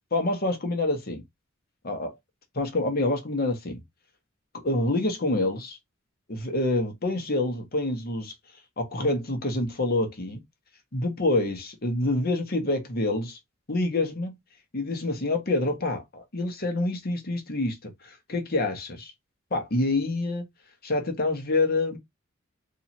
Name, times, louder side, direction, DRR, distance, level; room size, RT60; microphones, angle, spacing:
voice 1, 0.1-1.2 1.8-2.1 2.5-3.8 4.5-5.8 6.3-8.3 8.8-10.4 10.9-13.4 13.7-14.4 14.7-19.1 19.5-20.5 20.8-22.0, left 2 dB, 50° left, 1.1 m, -27 dB
3.0 x 2.7 x 4.2 m
head